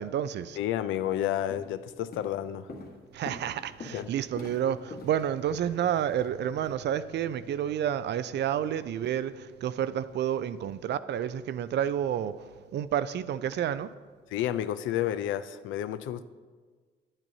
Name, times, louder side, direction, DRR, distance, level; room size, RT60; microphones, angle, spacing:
voice 1, 0.0-0.6 3.1-12.3 12.7-13.9, right 10 dB, 60° right, 14 dB, 0.4 m, -30 dB
voice 2, 0.6-2.7 3.9-4.1 14.3-16.2, left 11 dB, 80° left, 12 dB, 0.4 m, -30 dB
Walk footsteps, 1.0-1.2 1.5-1.8 2.1-6.7, left 3 dB, 50° left, 1.4 m, -45 dB
10.5 x 8.9 x 2.7 m, 1.5 s
cardioid pair, 90°, 20 cm